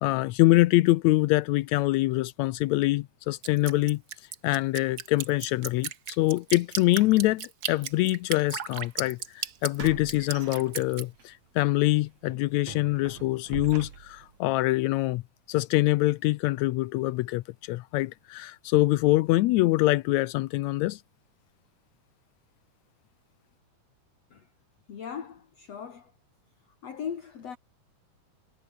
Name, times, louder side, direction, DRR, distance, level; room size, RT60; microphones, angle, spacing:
voice 1, 0.0-4.0 4.4-15.2 15.5-21.0, left 18 dB, 90° left, 1.6 m, -24 dB
Drip, 3.4-11.0, right 8 dB, 80° right, 0.8 m, -35 dB
sound 1, 8.7-8.8 9.8-11.2 11.6-11.8 12.3-14.4, right 7 dB, 55° right, 3.6 m, -42 dB
voice 2, 24.9-26.1 26.7-27.6, left 7 dB, 55° left, 3.3 m, -39 dB
omnidirectional pair, 3.8 m